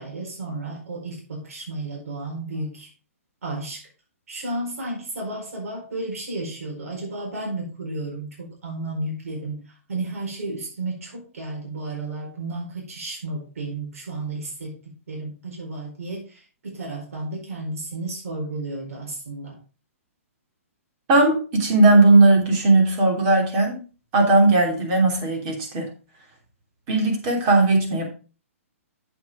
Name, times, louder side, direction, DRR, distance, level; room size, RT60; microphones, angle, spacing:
voice 1, 0.0-2.9 3.4-3.8 4.3-14.8 15.1-19.6, right 2 dB, 80° right, 0 dB, 4.4 m, -32 dB
voice 2, 21.1-23.8 24.1-25.9 26.9-28.1, right 2 dB, 30° right, 1 dB, 3.1 m, -17 dB
8.1 x 7.4 x 3.7 m, 0.35 s
hypercardioid pair, 155°, 8 cm